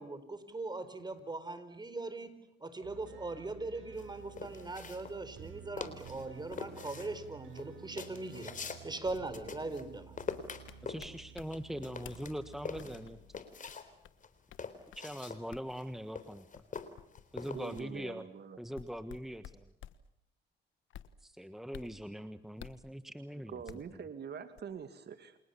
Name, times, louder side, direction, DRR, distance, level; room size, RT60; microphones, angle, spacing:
voice 1, 0.0-2.3 2.6-10.2, right 2 dB, 20° right, 11 dB, 4.5 m, -40 dB
sound 1, 2.8-13.6, right 7 dB, 75° right, 7.0 m, -53 dB
sound 2, 4.0-5.5 5.8-6.3 6.5-9.9 10.2-13.9 14.2-17.8, left 5 dB, 40° left, 3.8 m, -44 dB
sound 3, 10.3-11.5 12.0-12.2 12.5-14.2 14.5-14.6 14.9-15.0 15.5-15.6 16.5-17.9 18.7-20.0 20.9-21.1 21.7-21.9 22.6-22.9 23.7-23.9 24.6-24.7, left 11 dB, 75° left, 1.3 m, -51 dB
voice 2, 10.8-13.2 15.0-16.6 17.3-18.2 18.6-19.7 21.2-23.6, equal, ahead, 10 dB, 1.4 m, -42 dB
voice 3, 17.5-18.6 23.5-25.4, right 7 dB, 55° right, 9 dB, 2.3 m, -44 dB
30.0 x 27.0 x 7.1 m, 0.79 s
cardioid pair, 90°, 20 cm